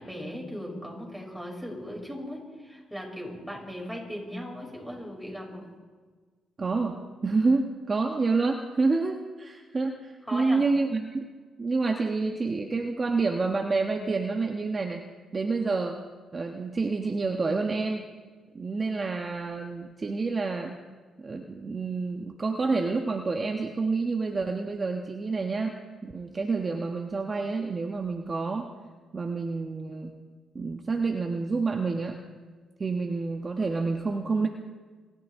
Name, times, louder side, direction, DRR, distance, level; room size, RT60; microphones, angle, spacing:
voice 1, 0.0-5.7 10.3-10.7, equal, ahead, -2 dB, 6.4 m, -38 dB
voice 2, 6.6-11.3 11.6-15.0 15.3-16.0 16.3-18.0 18.5-20.7 21.2-25.7 26.0-28.7 29.1-30.1 30.5-32.2 32.8-34.5, right 3 dB, 30° right, 2 dB, 1.3 m, -28 dB
28.0 x 13.5 x 3.7 m, 1.5 s
cardioid pair, 90°, 0 cm